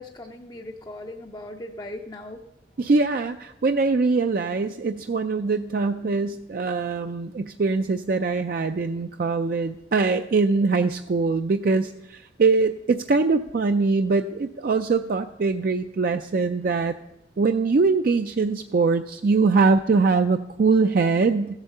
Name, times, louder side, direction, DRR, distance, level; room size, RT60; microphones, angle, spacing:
voice 1, 0.0-2.4, left 1 dB, 20° left, 3 dB, 0.5 m, -38 dB
voice 2, 2.8-16.9 17.4-21.6, right 4 dB, 50° right, 7 dB, 0.4 m, -22 dB
14.5 x 8.1 x 6.6 m, 0.87 s
head